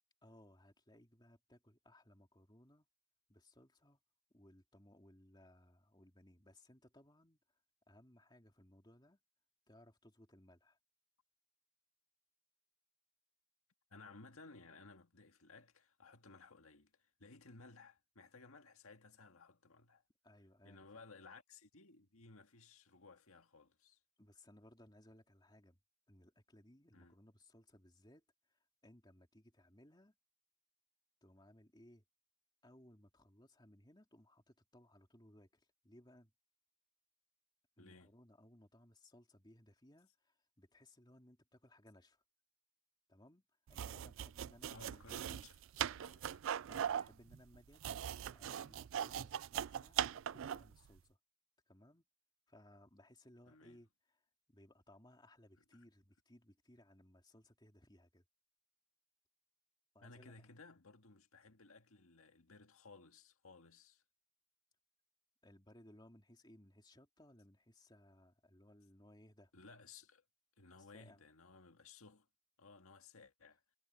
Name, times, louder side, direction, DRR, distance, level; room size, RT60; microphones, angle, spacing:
voice 1, 0.2-2.9 3.3-4.0 4.3-7.4 7.9-9.2 9.7-10.8 20.2-20.9 24.2-25.8 26.1-28.2 28.8-30.1 31.2-32.0 32.6-36.3 37.8-42.2 43.1-43.4 43.7-45.3 46.7-50.0 50.3-51.2 51.7-52.1 52.5-53.9 54.5-58.2 59.9-60.3 65.4-69.5 70.8-71.2, left 1 dB, 20° left, 3.0 m, -63 dB
voice 2, 13.9-20.0 20.6-24.0 26.9-27.2 37.8-38.1 44.7-46.5 53.5-53.8 55.6-55.8 60.0-64.0 69.5-70.2 70.6-72.3 72.6-73.6, left 3 dB, 75° left, 1.8 m, -59 dB
sound 1, 43.7-50.7, right 9 dB, 60° right, 0.3 m, -40 dB
head